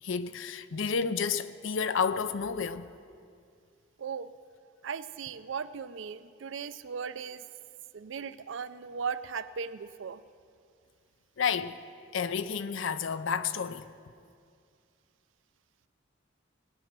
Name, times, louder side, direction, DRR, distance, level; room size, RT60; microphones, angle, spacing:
voice 1, 0.0-2.9 11.4-11.8 12.1-13.9, left 6 dB, 65° left, 0.5 m, -30 dB
voice 2, 4.0-4.3 4.8-7.4 7.9-10.2, right 6 dB, 65° right, 0.4 m, -37 dB
18.0 x 9.0 x 6.1 m
head